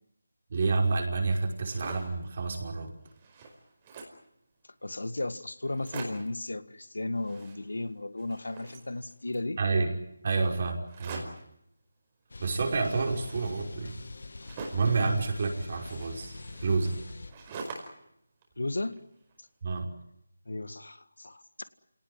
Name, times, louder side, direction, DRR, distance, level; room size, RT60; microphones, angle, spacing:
voice 1, 0.5-2.9 9.6-9.9 10.2-11.3 12.4-14.0 14.7-17.0 19.6-19.9, right 4 dB, 40° right, 2 dB, 5.5 m, -29 dB
sound 1, 1.5-2.2 2.7-2.8 3.0-4.3 4.9-5.0 5.2-5.3 5.6-6.4 7.1-7.9 8.2-9.5 10.9-11.5 12.5-15.0 15.7-18.1 18.4-19.3, right 3 dB, 20° right, 4.9 m, -45 dB
voice 2, 4.8-9.6 18.6-19.0 20.4-21.4, left 2 dB, 85° left, 13 dB, 1.8 m, -34 dB
sound 2, 12.3-17.3, left 2 dB, 70° left, 2.1 m, -44 dB
28.0 x 18.5 x 9.4 m, 0.77 s
figure-of-eight pair, 165°, 0 cm